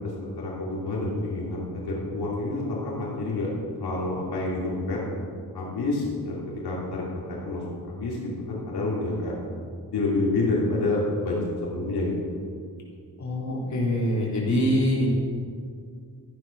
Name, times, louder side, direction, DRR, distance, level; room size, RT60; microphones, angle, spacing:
voice 1, 0.0-3.5 3.8-5.0 5.5-9.4 9.9-12.1, left 2 dB, 85° left, -5 dB, 2.9 m, -28 dB
voice 2, 13.2-15.1, equal, 45° left, -5 dB, 3.9 m, -24 dB
14.0 x 10.0 x 5.9 m, 2.2 s
wide cardioid pair, 125°, 38 cm